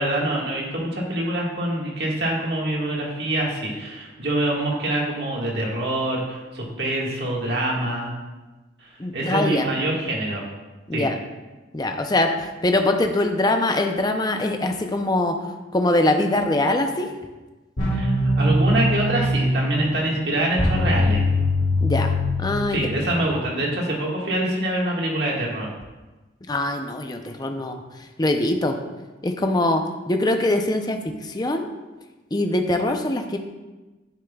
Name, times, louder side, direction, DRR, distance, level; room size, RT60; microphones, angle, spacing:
voice 1, 0.0-8.1 8.8-10.4 10.9-11.1 17.9-21.2 22.7-25.7, right 1 dB, 60° right, -3 dB, 1.7 m, -25 dB
voice 2, 9.0-9.7 10.9-11.2 11.7-12.3 12.6-15.3 15.7-17.1 21.8-22.1 22.4-22.9 23.2-23.3 26.5-27.8 28.2-28.8 29.2-31.7 32.3-33.4, left 1 dB, 20° left, 5 dB, 0.6 m, -22 dB
sound 1, 17.8-23.4, left 1 dB, 85° left, 2.5 m, -22 dB
9.7 x 7.4 x 2.3 m, 1.2 s
head